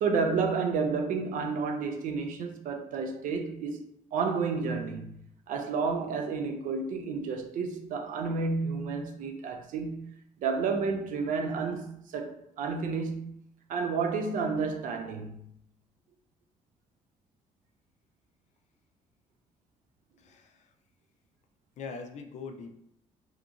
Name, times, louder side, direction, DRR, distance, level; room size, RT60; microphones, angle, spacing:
voice 1, 0.0-3.8 4.1-5.2 5.5-10.1 10.4-13.4 13.7-15.4, right 4 dB, 75° right, 0.4 m, -31 dB
voice 2, 20.2-20.7 21.8-22.7, left 4 dB, 60° left, 0.4 m, -42 dB
2.8 x 2.5 x 2.4 m
cardioid pair, 105°, 14 cm